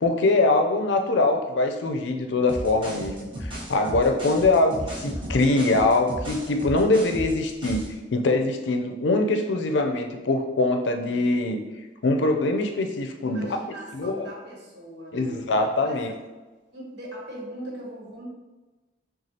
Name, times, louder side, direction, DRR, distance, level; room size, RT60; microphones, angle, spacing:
voice 1, 0.0-7.8 8.1-11.6 12.0-14.3 15.1-16.1, left 2 dB, 80° left, 5 dB, 0.5 m, -23 dB
sound 1, 2.5-8.0, equal, 30° right, 0.9 m, -34 dB
voice 2, 13.2-15.4 15.8-16.0 16.7-18.2, right 1 dB, 75° right, -4 dB, 1.3 m, -40 dB
6.1 x 2.3 x 2.8 m, 1.2 s
head